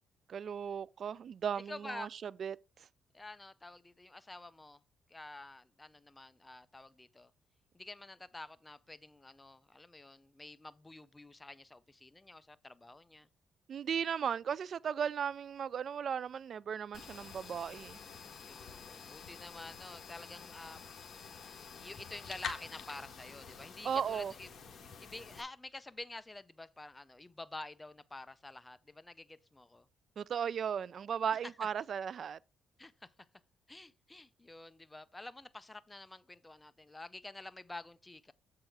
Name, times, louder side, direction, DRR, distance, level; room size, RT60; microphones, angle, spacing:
voice 1, 0.3-2.9 13.7-18.0 23.8-24.3 30.2-32.4, right 7 dB, 55° right, 0.3 m, -36 dB
voice 2, 1.7-2.1 3.1-4.8 5.1-7.3 7.7-13.3 18.5-20.8 21.7-24.5 25.0-29.9 32.8-33.1 33.7-38.3, left 2 dB, 15° left, 0.6 m, -49 dB
sound 1, 16.9-25.4, left 6 dB, 55° left, 1.6 m, -48 dB
7.5 x 4.8 x 4.7 m
cardioid pair, 90°, 0 cm